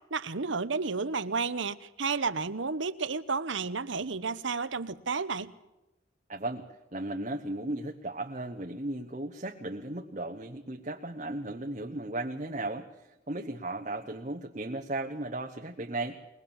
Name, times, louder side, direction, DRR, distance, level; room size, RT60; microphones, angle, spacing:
voice 1, 0.1-5.5, right 4 dB, 75° right, 1.0 m, -31 dB
voice 2, 6.3-16.2, right 2 dB, 35° right, 1.1 m, -36 dB
22.0 x 20.0 x 7.2 m
head